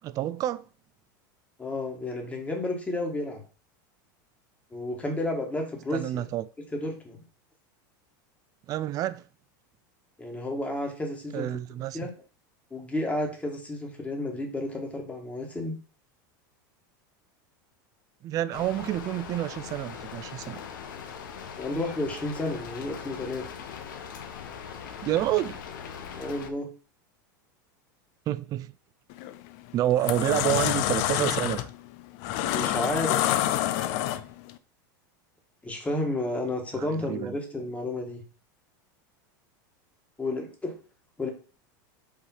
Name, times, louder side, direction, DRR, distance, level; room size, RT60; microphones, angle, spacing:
voice 1, 0.0-0.6 5.9-6.5 8.7-9.2 11.3-12.0 18.2-20.6 25.0-25.6 28.3-28.7 29.7-31.7 36.7-37.4, right 13 dB, 35° right, 0.3 m, -28 dB
voice 2, 1.6-3.4 4.7-6.3 6.7-7.2 10.2-11.6 11.9-12.1 12.7-15.7 21.6-23.5 26.2-26.7 32.5-33.3 35.6-38.2 40.2-40.7 41.2-41.3, left 1 dB, 15° left, 1.6 m, -31 dB
Rain, 18.5-26.5, left 7 dB, 85° left, 0.9 m, -41 dB
sound 1, 29.1-29.4 29.8-34.5, left 13 dB, 60° left, 0.5 m, -27 dB
5.4 x 3.2 x 5.5 m
supercardioid pair, 120°, 11 cm